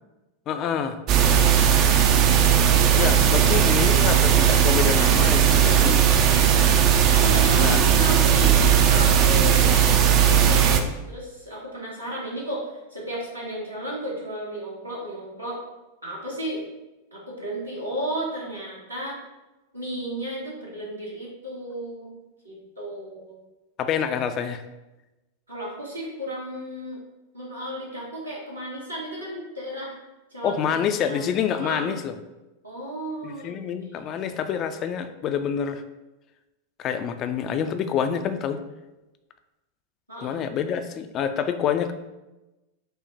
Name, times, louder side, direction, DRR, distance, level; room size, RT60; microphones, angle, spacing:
voice 1, 0.5-1.0 3.0-6.1 7.6-7.8 23.8-24.6 30.4-32.1 33.2-35.8 36.8-38.6 40.2-41.9, left 8 dB, 35° left, 8 dB, 0.3 m, -27 dB
sound 1, 1.1-10.8, right 8 dB, 40° right, 0.4 m, -18 dB
voice 2, 6.3-6.6 7.1-9.7 10.2-15.6 16.0-16.6 17.1-19.2 19.7-22.1 22.4-23.4 25.5-27.0 27.3-30.0 30.3-31.2 31.5-32.0 32.6-33.9 40.1-40.4, equal, 85° right, -5 dB, 1.3 m, -34 dB
5.5 x 2.1 x 4.0 m, 1.0 s
figure-of-eight pair, 90°, 0 cm